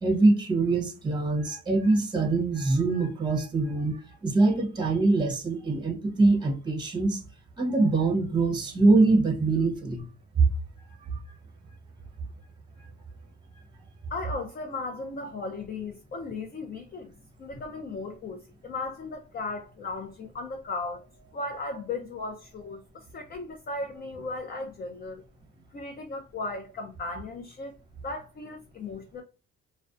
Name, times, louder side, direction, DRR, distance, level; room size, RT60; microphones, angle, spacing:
voice 1, 0.0-7.2 7.6-10.0 10.4-10.5 12.8-12.9, right 3 dB, 15° right, 0.7 m, -23 dB
voice 2, 14.1-17.1 17.4-25.2 25.7-27.7 28.0-29.2, left 3 dB, 30° left, 0.4 m, -36 dB
2.4 x 2.2 x 2.3 m
cardioid pair, 90°, 30 cm